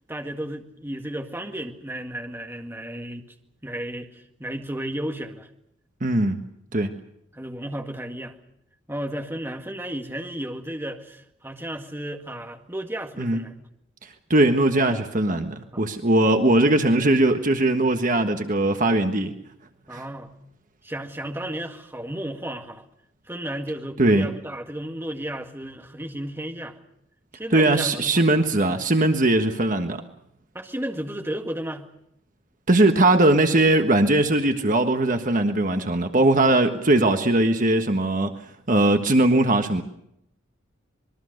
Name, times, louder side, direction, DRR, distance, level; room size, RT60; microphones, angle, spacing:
voice 1, 0.1-3.2 3.6-5.5 7.3-8.3 8.9-13.5 15.7-15.8 16.2-16.3 19.9-20.3 20.8-22.8 23.3-26.8 27.3-28.1 28.7-28.8 30.5-31.9, right 1 dB, 10° right, 4 dB, 2.0 m, -33 dB
voice 2, 6.0-6.4 6.7-6.9 13.2-13.4 14.3-19.3 19.9-20.0 24.0-24.3 27.5-30.0 32.7-38.3 38.7-39.8, right 2 dB, 40° right, 6 dB, 1.5 m, -20 dB
26.0 x 21.5 x 6.6 m, 0.75 s
head